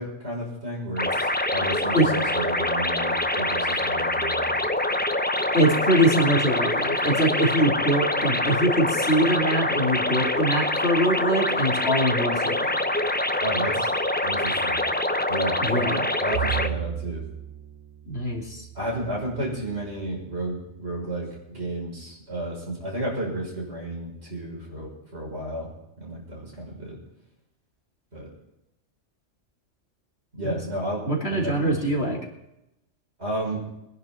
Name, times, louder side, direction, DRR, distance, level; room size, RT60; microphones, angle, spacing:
voice 1, 0.0-4.6 13.4-13.9 14.2-14.8 15.3-15.9 16.2-17.2 18.7-25.7 26.0-27.0 28.1-28.3 30.3-31.0 31.3-32.1 33.2-33.6, right 1 dB, 65° right, -2 dB, 6.3 m, -32 dB
sound 1, 1.0-16.7, left 1 dB, 10° left, 0.6 m, -25 dB
voice 2, 5.5-12.6 15.6-16.0 18.1-18.7 30.4-30.6 31.0-32.2, right 1 dB, 60° left, -1 dB, 3.2 m, -23 dB
Bowed string instrument, 16.3-20.7, right 11 dB, 85° right, 1.1 m, -36 dB
23.0 x 10.5 x 4.4 m, 0.87 s
omnidirectional pair, 1.2 m